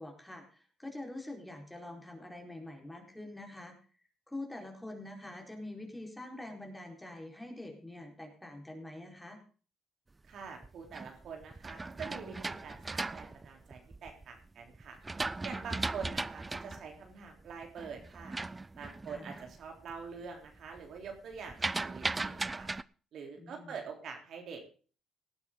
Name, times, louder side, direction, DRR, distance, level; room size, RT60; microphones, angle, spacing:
voice 1, 0.0-3.8 4.3-9.4 19.1-19.4 23.4-23.8, left 1 dB, 10° left, 2 dB, 4.5 m, -45 dB
voice 2, 10.3-15.0 15.4-18.4 18.7-21.5 21.8-22.7 23.1-24.7, right 5 dB, 65° right, 2 dB, 3.7 m, -45 dB
sound 1, 10.4-14.2 14.7-19.6 19.9-20.3 20.6-22.8, right 3 dB, 20° right, 0.5 m, -38 dB
18.0 x 9.8 x 3.9 m, 0.39 s
supercardioid pair, 80°, 0 cm